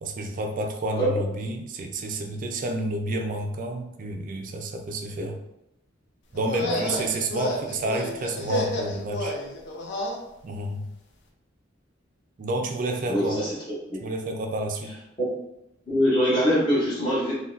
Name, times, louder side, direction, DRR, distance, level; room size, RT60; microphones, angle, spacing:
voice 1, 0.0-5.4 6.3-9.4 10.4-10.9 12.4-13.4 14.0-14.9, right 1 dB, 45° right, 3 dB, 0.3 m, -30 dB
sound 1, 6.3-10.2, left 1 dB, 60° left, 0.5 m, -30 dB
voice 2, 13.1-13.5 13.9-14.0 15.2-15.3 15.9-17.3, equal, 25° left, -10 dB, 0.9 m, -23 dB
3.7 x 2.2 x 2.4 m, 0.86 s
head